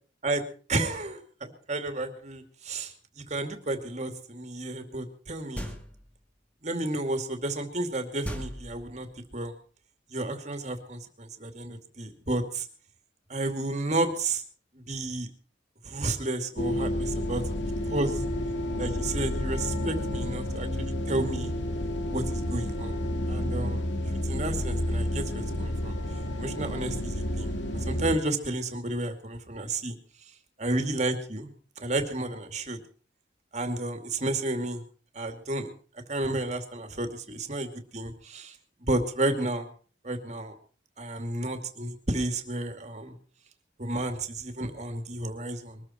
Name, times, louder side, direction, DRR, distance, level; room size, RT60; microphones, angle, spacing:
voice 1, 0.7-2.9 3.3-5.7 6.6-9.1 9.3-9.5 10.1-12.7 13.3-14.4 14.7-15.3 15.8-17.4 17.8-18.2 18.8-21.5 22.1-23.0 23.3-23.8 24.2-26.0 26.4-30.0 30.6-31.5 31.8-32.8 33.5-34.8 35.1-35.7 36.1-38.6 38.9-39.7 40.0-40.5 41.0-43.1 43.8-45.8, right 2 dB, 40° right, 6 dB, 2.5 m, -31 dB
sound 1, 5.5-6.2 8.2-9.3, equal, 10° left, 2.0 m, -38 dB
sound 2, 16.6-28.2, left 1 dB, 75° left, 2.4 m, -30 dB
22.5 x 14.0 x 4.4 m, 0.42 s
head